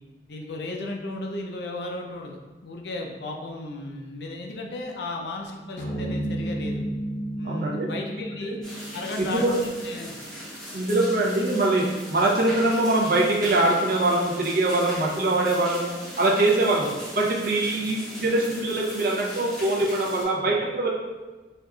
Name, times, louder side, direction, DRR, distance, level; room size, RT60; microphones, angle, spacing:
voice 1, 0.3-6.9 7.4-8.6 8.9-10.1 20.4-20.5, left 2 dB, 70° left, 1 dB, 0.5 m, -35 dB
sound 1, 5.8-10.4, right 1 dB, 45° left, 0.8 m, -32 dB
voice 2, 7.4-7.9 8.4-8.6 9.2-9.6 10.7-16.9 17.1-20.9, right 2 dB, 55° right, -2 dB, 0.6 m, -23 dB
sound 2, 8.6-20.2, equal, 5° left, 0.8 m, -39 dB
4.4 x 2.5 x 2.3 m, 1.2 s
head